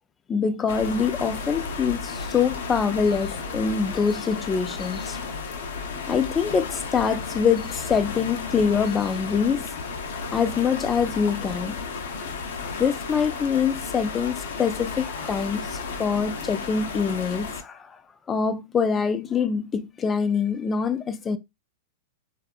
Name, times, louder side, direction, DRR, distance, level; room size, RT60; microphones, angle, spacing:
voice 1, 0.3-5.2 6.1-9.7 10.3-11.8 12.8-18.0 18.3-21.4, left 6 dB, 20° left, 0.3 m, -24 dB
sound 1, 0.7-17.6, left 4 dB, 75° left, 0.6 m, -33 dB
2.6 x 2.3 x 2.3 m
hypercardioid pair, 125°, 0 cm